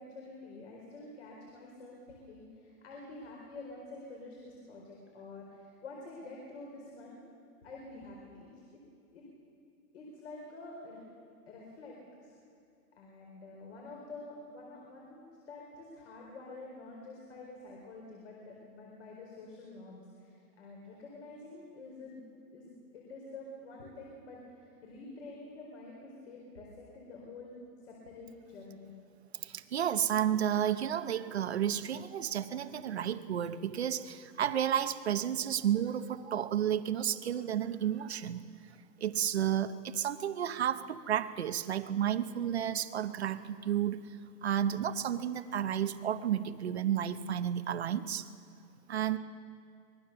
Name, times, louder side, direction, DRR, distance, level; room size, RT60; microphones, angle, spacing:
voice 1, 0.0-7.2 7.6-8.8 9.1-9.3 9.9-11.0 11.5-12.3 13.0-27.5 27.8-28.9, left 2 dB, 45° left, -1 dB, 4.5 m, -48 dB
voice 2, 29.4-38.4 39.0-44.0 44.4-48.2 48.9-49.2, right 10 dB, 45° right, 11 dB, 0.8 m, -32 dB
25.0 x 21.0 x 6.8 m, 2.3 s
hypercardioid pair, 180°, 47 cm